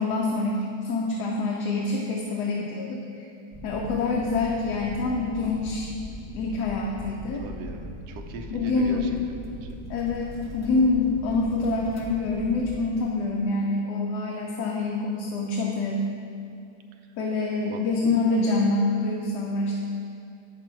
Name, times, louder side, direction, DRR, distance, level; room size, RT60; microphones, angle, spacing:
voice 1, 0.0-3.3 3.6-5.9 6.3-7.4 8.5-9.1 9.9-16.1 17.2-19.7, left 3 dB, 85° left, -1 dB, 1.3 m, -26 dB
sound 1, 3.5-12.8, equal, 15° left, 0.5 m, -40 dB
voice 2, 7.3-9.7 17.6-17.9, right 3 dB, 60° right, 4 dB, 0.8 m, -40 dB
8.8 x 6.1 x 4.5 m, 2.5 s
omnidirectional pair, 1.7 m